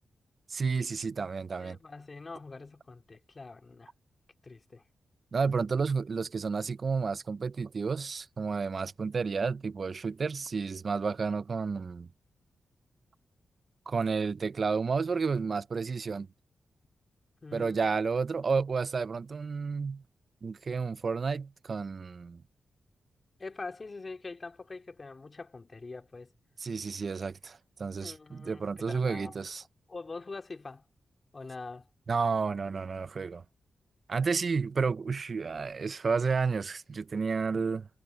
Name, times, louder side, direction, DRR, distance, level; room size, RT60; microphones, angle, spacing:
voice 1, 0.5-1.8 5.3-12.1 13.9-16.3 17.5-20.0 20.4-22.4 26.6-29.6 32.1-33.4 34.1-37.9, right 5 dB, 40° right, 0.3 m, -31 dB
voice 2, 1.6-3.9 4.4-4.8 17.4-18.0 23.4-26.3 28.0-29.3 29.9-30.8 31.3-31.9 37.5-37.6, left 3 dB, 30° left, 2.5 m, -44 dB
wide cardioid pair, 145°, 0 cm